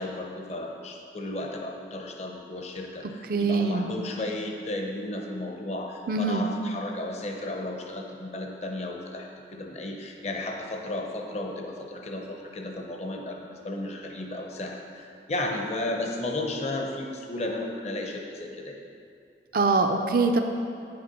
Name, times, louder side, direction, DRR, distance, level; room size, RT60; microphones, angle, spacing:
voice 1, 0.0-18.8, left 1 dB, 40° left, 2 dB, 0.7 m, -34 dB
voice 2, 3.3-3.9 6.1-6.5 19.5-20.4, right 3 dB, 55° right, 5 dB, 0.5 m, -23 dB
8.9 x 6.7 x 5.4 m, 2.5 s
head